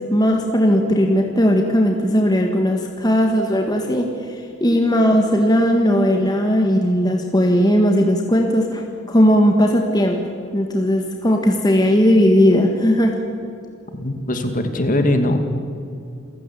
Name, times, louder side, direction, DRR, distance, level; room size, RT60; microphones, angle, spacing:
voice 1, 0.0-10.2 10.5-13.2, equal, 20° left, 2 dB, 1.6 m, -17 dB
voice 2, 14.0-15.4, left 1 dB, 40° left, 6 dB, 2.2 m, -20 dB
28.0 x 15.0 x 8.5 m, 2.5 s
head